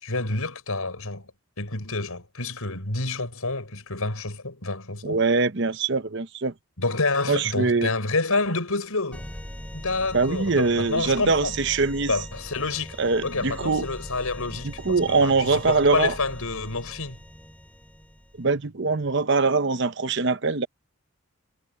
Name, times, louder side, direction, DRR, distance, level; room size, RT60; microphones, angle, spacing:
voice 1, 0.0-1.3 1.6-5.2 6.8-9.3 9.7-11.6 12.1-17.2, left 3 dB, 80° left, 5.7 m, -28 dB
voice 2, 5.0-6.5 7.3-7.9 10.1-12.1 13.0-13.9 14.6-16.1 18.4-20.7, right 4 dB, 55° right, 0.9 m, -23 dB
sound 1, 9.1-18.5, equal, 5° left, 2.6 m, -41 dB
head